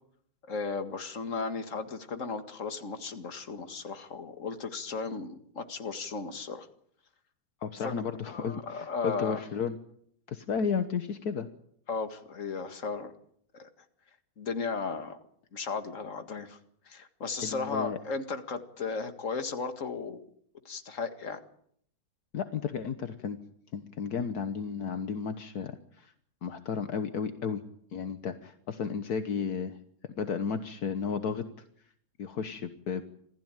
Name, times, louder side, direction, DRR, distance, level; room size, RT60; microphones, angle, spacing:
voice 1, 0.5-6.7 7.8-8.0 8.3-9.4 11.9-13.1 13.5-13.7 14.4-15.2 15.5-16.6 16.9-20.3 20.7-21.4, left 4 dB, 50° left, 8 dB, 2.2 m, -35 dB
voice 2, 7.6-9.8 10.3-11.5 17.4-18.0 22.3-23.4 23.7-26.1 26.4-27.6 27.9-29.8 30.0-31.5 32.2-33.0, left 6 dB, 70° left, 9 dB, 1.7 m, -33 dB
26.5 x 15.5 x 9.0 m, 0.68 s
omnidirectional pair, 1.7 m